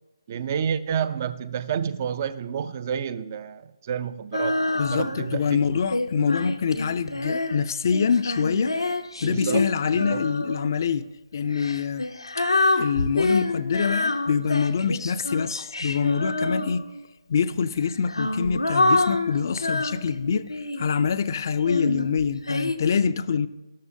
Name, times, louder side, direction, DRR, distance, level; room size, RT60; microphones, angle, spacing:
voice 1, 0.3-5.8 9.2-10.2, right 8 dB, 35° right, 0.4 m, -30 dB
Female singing, 4.3-5.4 5.9-10.7 11.5-17.1 17.8-21.0 21.6-22.8, left 2 dB, 90° left, 0.8 m, -27 dB
voice 2, 4.8-8.8 9.2-11.1 11.3-12.1 12.8-16.9 17.3-23.5, left 6 dB, 45° left, 0.4 m, -25 dB
13.0 x 11.5 x 2.7 m
figure-of-eight pair, 150°, 3 cm